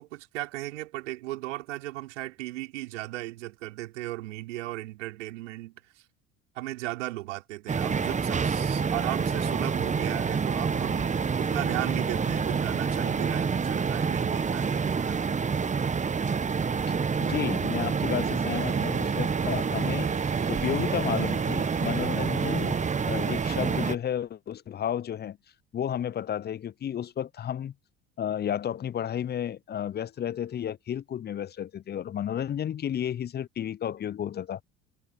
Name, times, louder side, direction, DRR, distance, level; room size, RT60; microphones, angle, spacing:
voice 1, 0.0-6.0 6.5-15.2, right 17 dB, 70° right, 4.6 m, -36 dB
sound 1, 7.7-24.0, right 5 dB, 20° right, 1.1 m, -27 dB
voice 2, 17.2-20.1 20.5-25.4 25.7-27.7 28.2-34.6, left 9 dB, 25° left, 0.7 m, -32 dB
Bowed string instrument, 18.5-23.6, right 13 dB, 45° right, 1.4 m, -43 dB
figure-of-eight pair, 65°, 37 cm